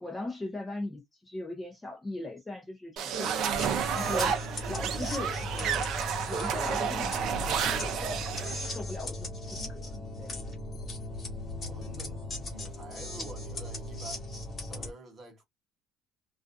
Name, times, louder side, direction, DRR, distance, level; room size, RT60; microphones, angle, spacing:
voice 1, 0.0-3.6 3.9-5.9 6.3-10.4, left 2 dB, 10° left, 0.7 m, -39 dB
sound 1, 3.0-8.7, right 7 dB, 55° right, 0.5 m, -31 dB
sound 2, 3.5-14.9, left 1 dB, 25° left, 1.2 m, -38 dB
voice 2, 11.6-14.3 14.6-15.4, right 2 dB, 30° right, 1.1 m, -48 dB
2.4 x 2.3 x 2.5 m
cardioid pair, 160°, 0 cm